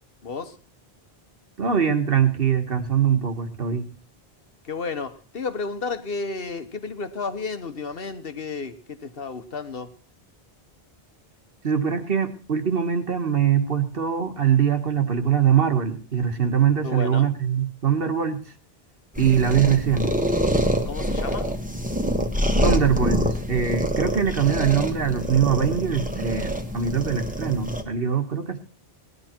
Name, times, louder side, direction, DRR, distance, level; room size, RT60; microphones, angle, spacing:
voice 1, 0.2-0.6 4.6-9.9 16.8-17.3 20.8-21.6, left 4 dB, 65° left, 1.4 m, -32 dB
voice 2, 1.6-3.8 11.6-18.4 19.2-20.1 22.6-28.6, right 8 dB, 65° right, 1.8 m, -22 dB
sound 1, 19.1-27.8, equal, 10° right, 1.4 m, -25 dB
18.5 x 11.0 x 4.5 m
omnidirectional pair, 1.1 m